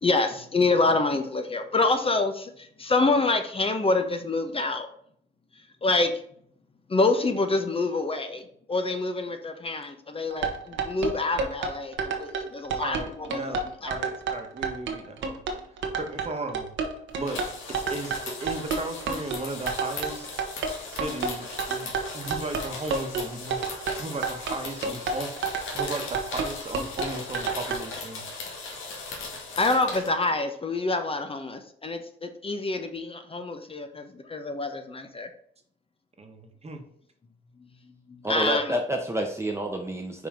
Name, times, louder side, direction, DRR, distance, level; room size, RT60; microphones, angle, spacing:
voice 1, 0.0-4.9 5.8-6.1 6.9-13.0 13.3-13.4 13.8-13.9 29.6-35.3 38.1-38.6, left 3 dB, 30° left, 7 dB, 0.9 m, -26 dB
sound 1, 10.3-27.8, right 5 dB, 75° right, 1.2 m, -30 dB
voice 2, 12.8-15.4 15.7-16.7 17.1-20.3 20.9-23.6 24.0-25.3 25.7-28.2 36.2-36.8, right 2 dB, 30° right, 5 dB, 1.3 m, -36 dB
sound 2, 17.1-30.1, left 3 dB, 80° left, 1.9 m, -38 dB
voice 3, 38.2-40.3, right 1 dB, 15° right, 2 dB, 0.9 m, -28 dB
5.4 x 4.3 x 5.1 m, 0.64 s
cardioid pair, 90°, 20 cm